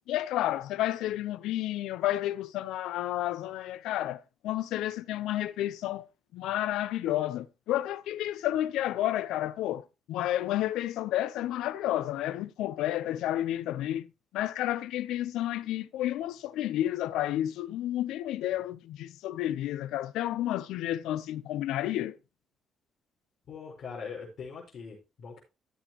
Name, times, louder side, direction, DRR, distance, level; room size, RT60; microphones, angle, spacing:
voice 1, 0.1-6.0 6.3-14.1 14.3-22.2, left 13 dB, 90° left, 0.6 m, -31 dB
voice 2, 23.5-25.4, left 5 dB, 60° left, 4.8 m, -41 dB
14.5 x 7.2 x 3.0 m
cardioid pair, 90°, 0 cm